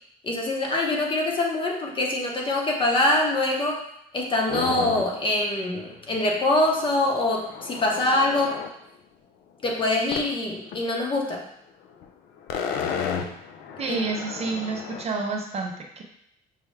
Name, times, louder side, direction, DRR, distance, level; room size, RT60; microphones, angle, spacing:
voice 1, 0.2-3.8 4.1-8.6 9.6-11.4 13.9-14.1, left 2 dB, 30° left, 0 dB, 0.8 m, -24 dB
sound 1, 4.5-5.2 5.6-5.7 5.9-8.7 10.1-10.4 10.7-10.8 11.9-12.1 12.4-15.0, left 7 dB, 70° left, 0.5 m, -33 dB
voice 2, 13.8-16.0, right 4 dB, 40° right, 2 dB, 0.5 m, -29 dB
5.4 x 2.2 x 3.2 m, 0.74 s
cardioid pair, 110°, 17 cm